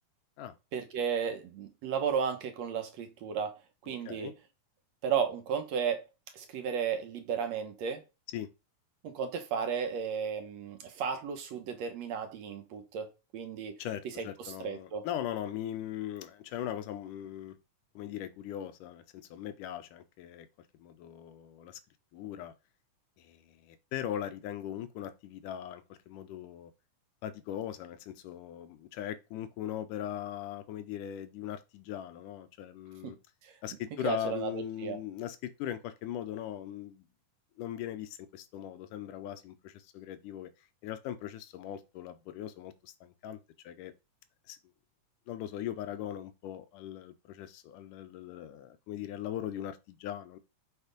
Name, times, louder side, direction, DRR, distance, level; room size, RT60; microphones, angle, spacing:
voice 1, 0.7-4.3 5.0-6.0 6.3-8.0 9.0-13.8 14.2-15.0 33.0-33.2 33.4-33.6 34.0-35.0, right 7 dB, 65° right, 2.0 m, -34 dB
voice 2, 13.8-17.6 18.0-20.5 20.8-21.8 22.1-22.5 23.2-26.7 27.2-33.2 33.6-37.0 37.6-40.5 40.8-43.4 43.6-43.9 44.5-44.6 45.3-50.4, left 11 dB, 85° left, 2.4 m, -39 dB
7.2 x 4.5 x 5.1 m
omnidirectional pair, 3.6 m